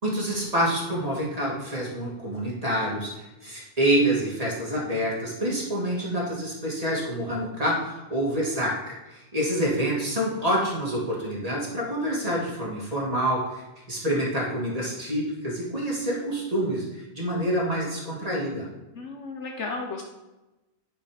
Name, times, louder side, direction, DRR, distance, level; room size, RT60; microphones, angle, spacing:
voice 1, 0.0-3.1 3.4-13.6 13.9-18.7, right 1 dB, 30° right, -4 dB, 2.4 m, -27 dB
voice 2, 18.9-20.0, left 3 dB, 65° left, 2 dB, 1.1 m, -34 dB
10.0 x 5.3 x 5.0 m, 1.0 s
omnidirectional pair, 1.4 m